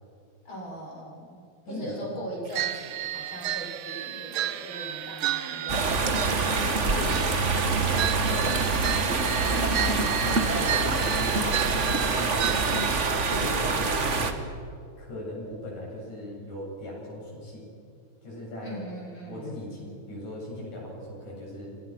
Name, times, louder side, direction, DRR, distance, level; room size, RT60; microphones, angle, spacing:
voice 1, 0.4-6.6 7.0-7.7 18.6-19.6, right 1 dB, 40° left, -3 dB, 7.9 m, -40 dB
voice 2, 1.7-2.0 5.7-5.8 6.8-7.6 8.3-8.6 9.4-11.7 12.2-12.7 13.3-13.6 13.9-14.4 15.0-17.7 18.2-18.8 19.3-21.8, left 1 dB, 70° left, -4 dB, 9.3 m, -39 dB
sound 1, 2.5-13.9, right 12 dB, 75° right, 1.2 m, -32 dB
sound 2, 5.7-14.3, right 3 dB, 35° right, 1.3 m, -25 dB
29.0 x 24.5 x 6.1 m, 2.3 s
omnidirectional pair, 3.4 m